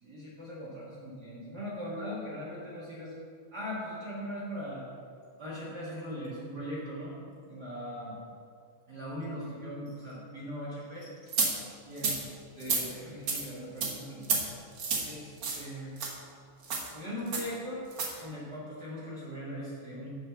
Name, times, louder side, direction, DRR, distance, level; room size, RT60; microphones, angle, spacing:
voice 1, 0.0-3.1 3.5-4.9 5.4-7.1 7.5-8.2 8.9-11.1 11.9-12.2 12.5-14.2 15.0-15.9 16.9-17.9 18.2-20.2, equal, 40° right, -8 dB, 1.6 m, -40 dB
sound 1, 11.3-11.5 12.0-12.2 12.6-12.8 13.3-13.4 13.8-13.9 14.2-14.4 14.8-15.0 15.4-15.6 16.0-16.1 16.6-16.9 17.3-17.5 17.9-18.1, right 4 dB, 70° right, 1.0 m, -29 dB
7.5 x 5.7 x 6.9 m, 2.5 s
omnidirectional pair, 3.9 m